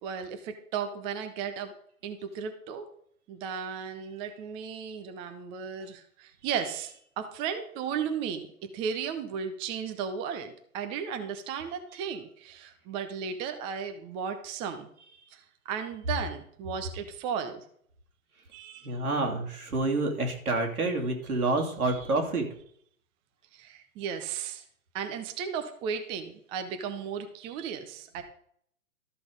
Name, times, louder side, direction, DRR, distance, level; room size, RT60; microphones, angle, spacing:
voice 1, 0.0-1.7 2.0-2.9 3.3-8.5 8.7-14.9 15.3-17.6 18.5-19.0 21.9-22.1 23.5-24.6 24.9-28.2, right 7 dB, 15° right, 7 dB, 0.5 m, -35 dB
voice 2, 18.8-22.5, right 2 dB, 90° right, 1 dB, 2.9 m, -28 dB
13.0 x 5.9 x 5.1 m, 0.64 s
hypercardioid pair, 135°, 43 cm